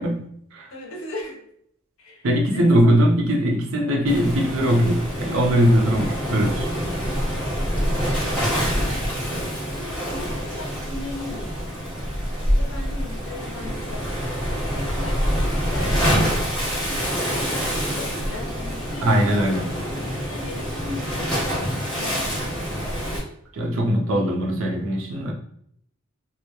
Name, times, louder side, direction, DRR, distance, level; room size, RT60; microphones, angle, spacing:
voice 1, 0.0-0.7 2.2-6.7 19.0-19.7 23.5-25.3, equal, 65° right, 2 dB, 0.5 m, -20 dB
voice 2, 0.7-1.4 2.0-2.7 9.7-12.2 12.5-14.4 14.7-16.5 17.3-22.7, left 2 dB, 70° left, -1 dB, 0.6 m, -38 dB
Waves surf, 4.1-23.2, equal, 5° left, 0.9 m, -26 dB
2.1 x 2.0 x 2.8 m, 0.69 s
head